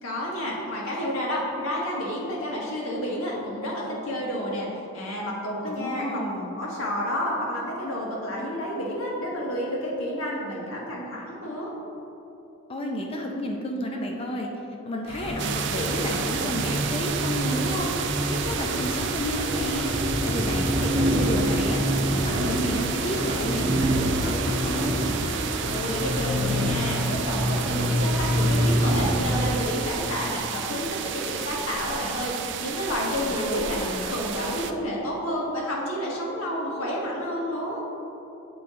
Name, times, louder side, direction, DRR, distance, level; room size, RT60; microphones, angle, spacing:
voice 1, 0.0-4.7 4.9-6.2 6.6-11.7 25.7-33.8 34.1-37.8, equal, 90° left, -3 dB, 1.4 m, -30 dB
voice 2, 5.6-6.5 12.7-14.5 14.8-17.9 18.3-19.9 20.2-21.8 22.1-25.1 33.3-33.4 33.7-34.1, left 1 dB, 25° left, 0 dB, 0.5 m, -31 dB
sound 1, 15.1-29.6, equal, 35° right, 1.2 m, -26 dB
sound 2, 15.4-34.7, right 8 dB, 55° right, 0.3 m, -32 dB
7.6 x 4.3 x 3.7 m, 2.9 s
head